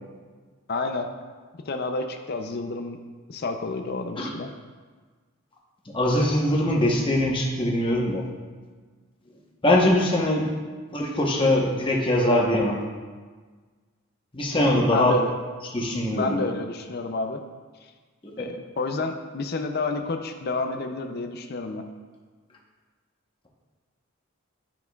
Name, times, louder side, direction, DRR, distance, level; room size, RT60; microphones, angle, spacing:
voice 1, 0.7-1.1 1.6-3.0 3.3-4.5 14.9-15.3 16.1-17.4 17.8-17.9 18.4-21.8, left 3 dB, 45° left, 5 dB, 0.5 m, -30 dB
voice 2, 5.9-8.2 9.6-10.5 10.9-12.8 14.3-15.2 15.7-16.5 18.2-18.5, left 1 dB, 25° left, -2 dB, 0.9 m, -22 dB
10.5 x 5.9 x 2.3 m, 1.4 s
head